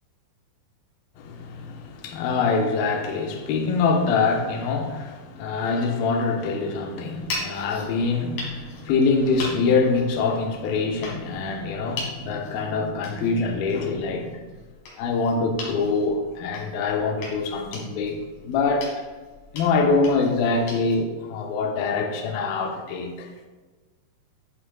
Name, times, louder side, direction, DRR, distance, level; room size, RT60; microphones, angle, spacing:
voice 1, 1.2-14.4 15.0-18.9 19.5-23.3, left 4 dB, 75° left, 2.3 m, -24 dB
sound 1, 7.1-21.0, left 2 dB, 55° left, 3.1 m, -40 dB
11.0 x 7.3 x 2.3 m
omnidirectional pair, 5.3 m